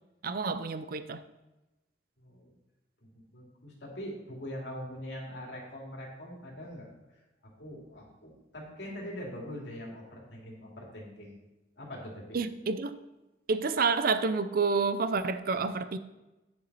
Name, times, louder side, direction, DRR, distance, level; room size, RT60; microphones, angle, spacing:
voice 1, 0.2-1.2 12.3-13.0 13.5-16.0, right 4 dB, 55° right, 13 dB, 0.5 m, -29 dB
voice 2, 2.2-2.5 3.0-6.9 7.4-11.4 11.8-12.4, equal, 75° left, -2 dB, 2.7 m, -43 dB
9.7 x 7.1 x 4.1 m, 1.0 s
head